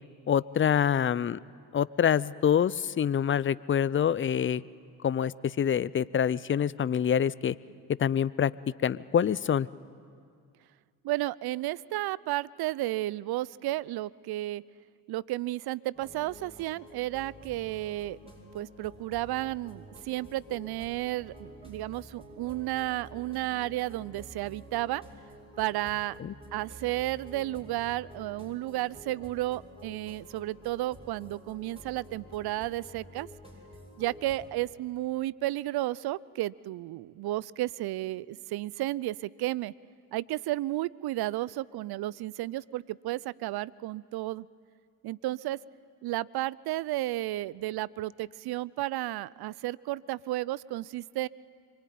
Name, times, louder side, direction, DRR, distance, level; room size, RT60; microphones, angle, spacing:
voice 1, 0.3-1.4 1.7-4.6 5.0-7.5 8.0-8.5 8.8-9.7 26.2-26.3, left 8 dB, 25° left, 20 dB, 0.6 m, -26 dB
voice 2, 11.0-14.6 15.1-18.2 18.5-25.0 25.6-26.2 26.5-33.3 34.0-39.7 40.1-44.5 45.0-45.6 46.0-51.3, right 16 dB, 55° right, 22 dB, 0.7 m, -33 dB
sound 1, 15.9-34.5, equal, 10° right, 7.8 m, -50 dB
25.5 x 23.0 x 9.3 m, 2.3 s
hypercardioid pair, 55°, 47 cm